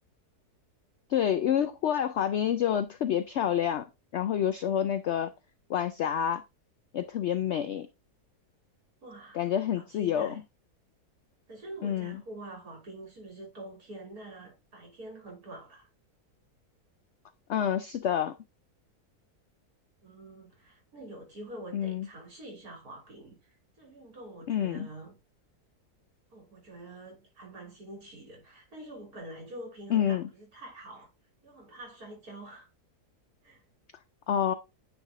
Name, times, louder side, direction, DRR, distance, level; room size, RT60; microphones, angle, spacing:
voice 1, 1.1-3.8 4.1-5.3 5.7-6.4 6.9-7.9 9.3-10.3 11.8-12.2 17.5-18.3 21.7-22.1 24.5-24.9 29.9-30.3 34.3-34.5, left 9 dB, 75° left, 0.6 m, -28 dB
voice 2, 9.0-10.4 11.5-15.9 20.0-25.1 26.3-31.1 31.4-32.7 33.4-33.6, right 1 dB, 65° right, 3.6 m, -46 dB
9.3 x 3.5 x 3.6 m
omnidirectional pair, 1.7 m